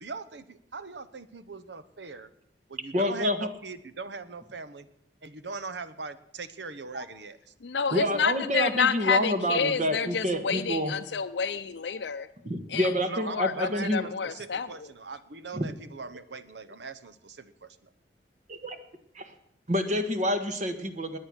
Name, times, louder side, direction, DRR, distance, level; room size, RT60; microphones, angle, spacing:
voice 1, 0.0-2.3 2.7-4.9 5.2-7.5 13.0-17.9, right 4 dB, 80° right, 13 dB, 1.0 m, -41 dB
voice 2, 2.9-3.5 6.9-7.0 7.9-10.9 12.4-14.0 15.5-15.7 18.5-18.8 19.1-19.3 19.7-21.2, equal, 45° right, 8 dB, 1.6 m, -28 dB
voice 3, 7.6-12.3 12.7-12.9 13.3-14.7, left 6 dB, 75° left, 7 dB, 0.6 m, -29 dB
20.5 x 9.0 x 6.4 m, 0.75 s
head